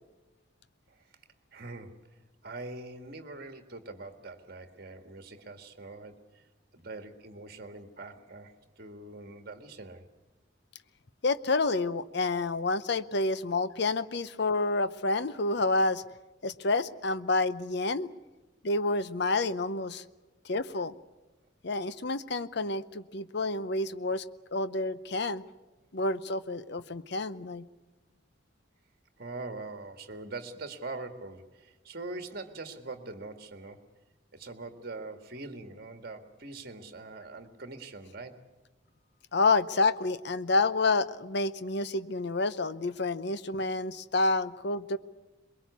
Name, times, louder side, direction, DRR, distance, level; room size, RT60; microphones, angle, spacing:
voice 1, 1.5-2.1 2.4-6.4 6.7-10.1 29.2-33.9 34.3-38.4, right 3 dB, 50° right, 7 dB, 1.8 m, -43 dB
voice 2, 11.2-16.0 16.4-18.1 18.6-20.0 20.4-20.9 21.6-24.2 24.5-25.4 25.9-27.6 39.3-45.0, left 3 dB, 60° left, 14 dB, 0.7 m, -29 dB
23.0 x 22.0 x 8.3 m, 1.1 s
head